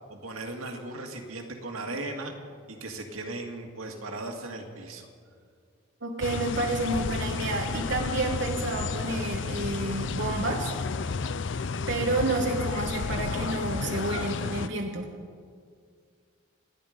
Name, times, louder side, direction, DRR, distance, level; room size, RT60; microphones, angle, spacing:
voice 1, 0.1-2.3 2.7-5.1, right 2 dB, 85° right, 3 dB, 2.1 m, -37 dB
voice 2, 6.0-10.7 11.9-15.1, right 2 dB, 55° right, 1 dB, 1.3 m, -30 dB
sound 1, 6.2-14.7, left 4 dB, 60° left, 0.5 m, -32 dB
28.0 x 10.0 x 5.2 m, 2.1 s
head